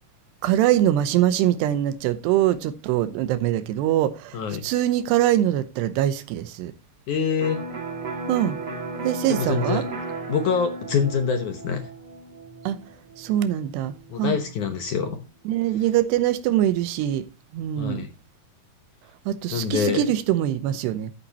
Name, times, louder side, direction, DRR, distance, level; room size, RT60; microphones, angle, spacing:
voice 1, 0.4-4.4 4.6-6.7 8.3-8.6 9.0-9.8 12.7-12.8 13.2-14.4 15.5-17.2 17.5-18.1 19.3-21.1, right 12 dB, 90° right, 3.0 m, -23 dB
voice 2, 7.1-7.6 9.3-9.8 10.3-11.9 14.1-15.2 17.8-18.1 19.5-20.0, left 6 dB, 65° left, 2.0 m, -25 dB
Electric guitar, 7.4-15.1, right 2 dB, 35° right, 1.7 m, -35 dB
13.0 x 9.6 x 2.9 m
omnidirectional pair, 4.8 m